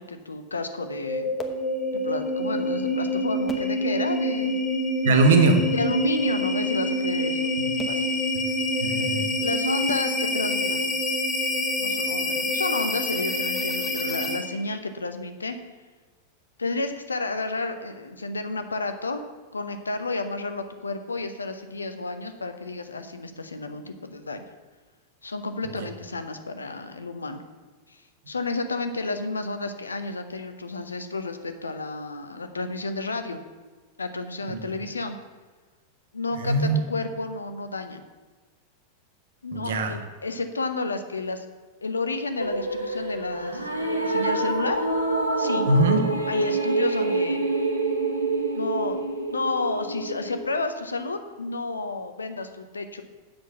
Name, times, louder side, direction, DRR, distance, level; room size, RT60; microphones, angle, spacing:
voice 1, 0.0-1.3 2.0-4.5 5.7-7.5 7.9-8.1 9.4-10.8 11.8-15.6 16.6-19.2 19.5-24.4 25.2-27.4 27.9-28.0 28.3-33.4 34.0-35.2 36.1-38.0 39.4-41.5 41.8-44.8 45.4-45.7 46.3-47.4 48.5-49.0 49.3-53.0, left 3 dB, 75° left, 8 dB, 0.8 m, -31 dB
sound 1, 0.7-14.6, left 1 dB, 20° left, 1.0 m, -27 dB
voice 2, 5.0-5.6 7.6-7.7 8.8-9.2 34.5-34.6 36.4-36.8 39.5-39.9 45.7-46.0, right 3 dB, 60° right, 5 dB, 1.2 m, -21 dB
sound 2, 42.4-50.6, right 2 dB, 90° right, 1.2 m, -27 dB
7.9 x 6.3 x 6.8 m, 1.4 s
figure-of-eight pair, 90°, 0 cm